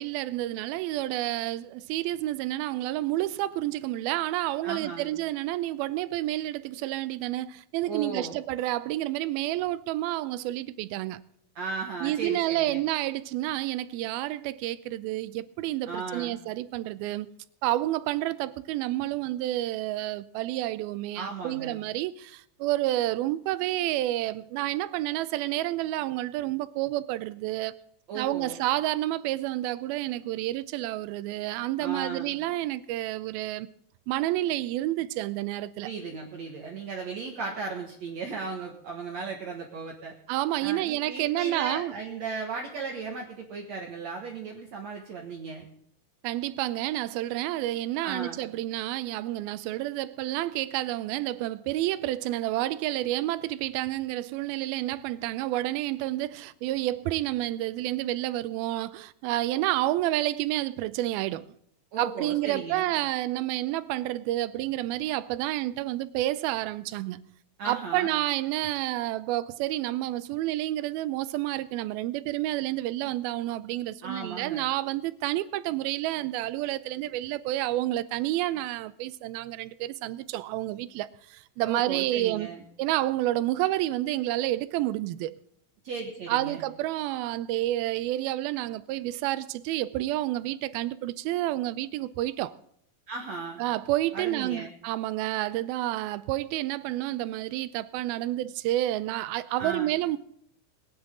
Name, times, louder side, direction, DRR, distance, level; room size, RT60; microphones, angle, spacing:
voice 1, 0.0-11.2 12.0-17.3 17.6-27.8 28.2-33.7 34.1-35.9 40.3-41.9 46.2-61.5 62.0-67.4 67.7-82.5 82.8-85.4 86.3-92.6 93.6-100.2, right 15 dB, 85° right, 2.5 m, -29 dB
voice 2, 4.6-5.1 7.9-8.4 11.6-12.8 15.9-16.4 21.1-21.8 28.1-28.6 31.8-32.4 35.8-40.1 40.6-45.7 48.0-48.4 61.9-62.9 67.6-68.2 74.0-74.7 81.6-82.6 85.8-86.6 93.1-93.6 94.1-94.7 99.6-100.0, right 4 dB, 55° right, 2.4 m, -36 dB
22.0 x 9.9 x 3.7 m
omnidirectional pair, 4.2 m